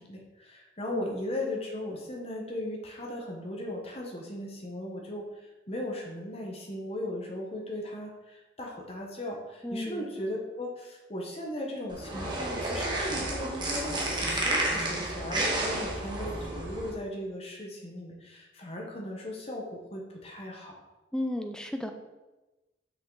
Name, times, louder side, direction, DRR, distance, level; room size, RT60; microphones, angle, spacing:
voice 1, 0.0-20.8, left 1 dB, 35° left, 0 dB, 1.1 m, -37 dB
voice 2, 9.6-10.0 21.1-21.9, left 1 dB, 5° left, 6 dB, 0.5 m, -33 dB
sound 1, 11.9-16.9, right 1 dB, 25° right, 1.3 m, -31 dB
6.0 x 5.7 x 3.9 m, 1.1 s
head